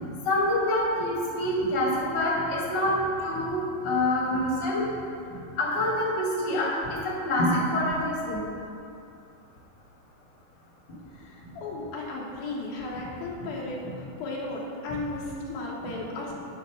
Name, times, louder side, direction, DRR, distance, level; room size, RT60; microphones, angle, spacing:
voice 1, 0.2-4.8 5.3-8.4 13.8-13.9, left 1 dB, 30° left, -6 dB, 2.8 m, -26 dB
voice 2, 11.1-16.3, left 2 dB, 80° left, -3 dB, 2.9 m, -35 dB
9.0 x 6.4 x 6.2 m, 2.6 s
omnidirectional pair, 4.2 m